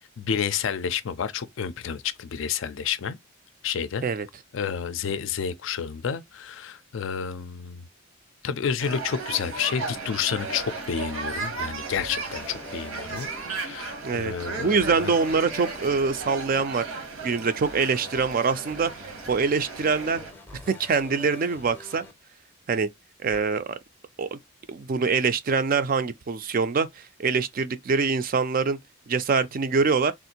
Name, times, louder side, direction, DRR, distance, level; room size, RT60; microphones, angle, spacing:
voice 1, 0.2-3.2 3.6-4.1 4.5-7.8 8.4-15.1, left 7 dB, 60° left, 0.4 m, -30 dB
sound 1, 8.8-20.3, right 3 dB, 80° right, 1.0 m, -35 dB
sound 2, 10.3-10.8 11.9-13.6 14.8-16.4 17.6-22.1 23.3-23.4, left 2 dB, 10° left, 0.6 m, -46 dB
voice 2, 14.0-16.8 17.2-20.2 20.5-22.0 22.7-22.9 23.2-23.7 24.2-24.4 24.7-28.8 29.1-30.1, right 5 dB, 40° right, 0.4 m, -24 dB
3.4 x 2.5 x 2.7 m
head